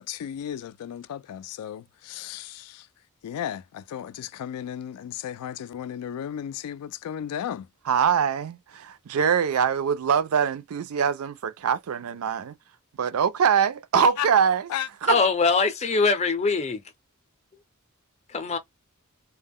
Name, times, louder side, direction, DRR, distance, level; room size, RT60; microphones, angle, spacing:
voice 1, 0.0-2.9 3.2-7.7 14.2-14.3 14.7-14.9, left 10 dB, 85° left, 0.3 m, -34 dB
voice 2, 7.9-12.5 13.0-14.6 15.0-15.2, right 7 dB, 75° right, 0.4 m, -23 dB
voice 3, 15.1-16.8 18.3-18.6, left 4 dB, 30° left, 0.5 m, -22 dB
2.2 x 2.1 x 3.5 m
head